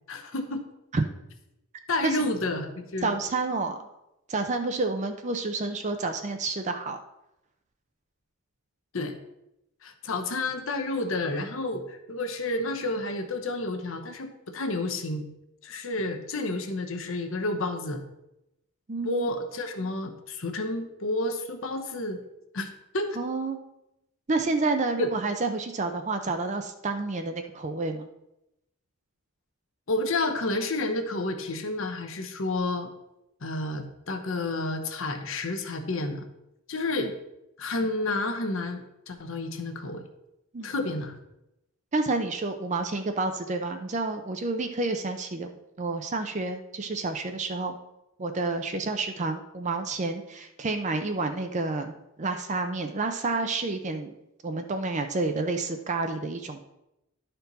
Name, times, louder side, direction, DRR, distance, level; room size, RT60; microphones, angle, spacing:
voice 1, 0.1-0.7 1.9-3.1 8.9-9.2 9.8-15.3 15.6-18.0 19.0-22.2 22.5-22.7 22.9-23.2 25.0-25.1 29.9-32.9 33.4-36.3 36.7-37.1 37.6-40.1 40.6-41.2, left 2 dB, 60° left, 6 dB, 0.9 m, -30 dB
voice 2, 3.0-3.8 4.3-7.0 18.9-19.3 23.2-23.6 24.3-28.1 37.0-37.1 40.5-40.7 41.9-47.8 48.2-54.2 54.4-56.6, right 3 dB, 30° right, 6 dB, 0.5 m, -29 dB
11.0 x 4.4 x 4.0 m, 0.88 s
head